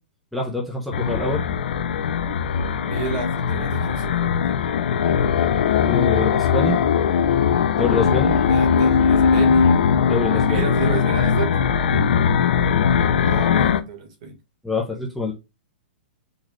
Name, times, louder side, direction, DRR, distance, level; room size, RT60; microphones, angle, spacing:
voice 1, 0.3-1.4 5.8-6.8 7.7-8.4 10.1-10.7 11.9-12.1 14.6-15.3, left 2 dB, ahead, 0.4 m, -25 dB
sound 1, 0.9-13.8, left 7 dB, 65° left, 0.4 m, -19 dB
voice 2, 2.8-4.4 8.3-9.7 10.3-11.5 13.2-14.4, right 4 dB, 40° right, 1.2 m, -31 dB
3.9 x 2.2 x 3.0 m
hypercardioid pair, 175°, 6 cm